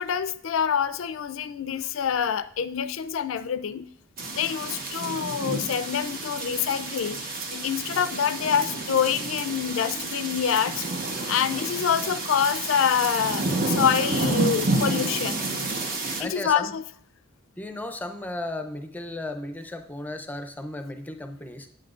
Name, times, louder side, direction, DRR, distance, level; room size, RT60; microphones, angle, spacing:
voice 1, 0.0-3.9 4.3-10.8 11.3-15.4 16.2-16.8, left 8 dB, 75° left, 13 dB, 0.4 m, -26 dB
sound 1, 4.2-16.2, right 2 dB, 50° right, 1.1 m, -30 dB
voice 2, 16.2-16.7 17.6-21.7, left 1 dB, 10° left, 6 dB, 0.5 m, -35 dB
9.1 x 8.3 x 2.4 m, 0.65 s
head